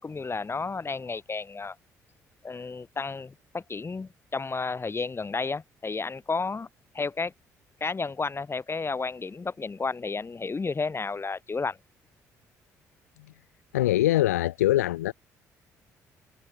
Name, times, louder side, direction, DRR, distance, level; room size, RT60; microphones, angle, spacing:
voice 1, 0.0-1.8 2.4-6.7 6.9-7.3 7.8-11.8, left 4 dB, 30° left, 4.1 m, -32 dB
voice 2, 13.7-15.1, left 15 dB, 85° left, 0.8 m, -23 dB
hypercardioid pair, 50°, 8 cm